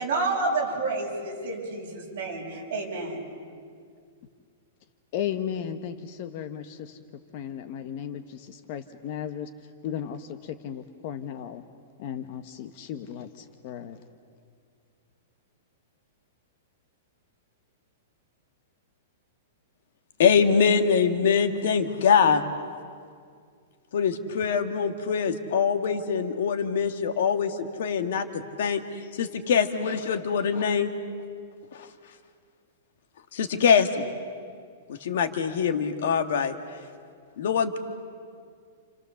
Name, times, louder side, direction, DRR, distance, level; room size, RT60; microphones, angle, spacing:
voice 1, 0.0-3.2, right 3 dB, 40° right, -2 dB, 6.8 m, -29 dB
voice 2, 5.1-7.0 7.3-9.5 9.8-11.6 12.0-14.0, left 9 dB, 35° left, 8 dB, 1.0 m, -35 dB
voice 3, 20.2-22.4 23.9-28.3 28.6-28.8 29.2-30.9 31.7-31.9 33.3-34.0 35.0-36.6 37.4-37.8, left 6 dB, 55° left, 7 dB, 1.6 m, -23 dB
29.0 x 29.0 x 7.0 m, 2.1 s
supercardioid pair, 180°, 0 cm